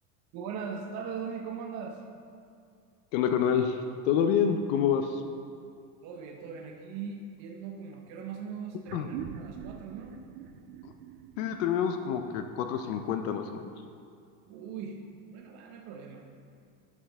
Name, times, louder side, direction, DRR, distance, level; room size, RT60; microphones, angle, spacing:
voice 1, 0.3-2.0 6.0-10.2 14.5-15.0 15.3-16.2, right 6 dB, 35° right, 2 dB, 0.6 m, -40 dB
voice 2, 3.1-5.2 8.9-9.1 11.4-13.6, left 8 dB, 55° left, 7 dB, 0.5 m, -27 dB
sound 1, 8.9-13.8, right 10 dB, 75° right, 0.5 m, -45 dB
11.0 x 5.8 x 3.4 m, 2.3 s
supercardioid pair, 140°, 46 cm